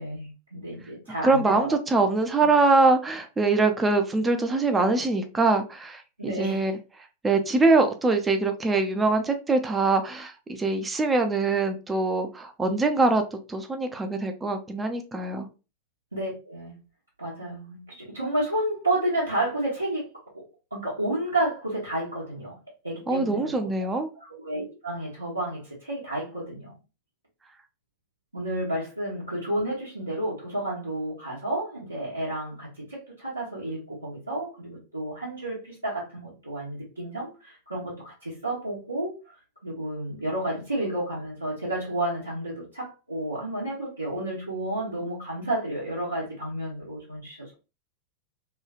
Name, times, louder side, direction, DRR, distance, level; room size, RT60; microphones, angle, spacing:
voice 1, 0.0-1.7 6.2-6.6 16.1-16.7 17.2-20.0 20.3-20.4 20.7-22.6 22.8-23.7 24.1-26.7 28.3-39.4 39.6-47.5, right 1 dB, 85° right, 1.0 m, -31 dB
voice 2, 1.2-6.7 7.0-13.2 13.5-15.5 23.1-24.1, right 3 dB, 15° right, 0.5 m, -23 dB
3.0 x 2.3 x 2.3 m
figure-of-eight pair, 90°, 0 cm